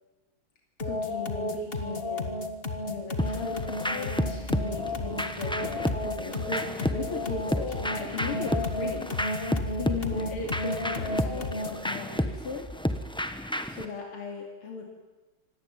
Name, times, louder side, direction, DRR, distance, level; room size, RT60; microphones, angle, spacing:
voice 1, 0.8-2.4 2.8-9.2 9.8-12.7 13.7-14.9, left 5 dB, 85° left, 0 dB, 3.6 m, -37 dB
sound 1, 0.8-11.9, left 2 dB, 30° left, 1.6 m, -33 dB
sound 2, 3.2-13.9, left 1 dB, 5° left, 0.4 m, -32 dB
25.5 x 19.0 x 9.1 m, 1.2 s
omnidirectional pair, 2.4 m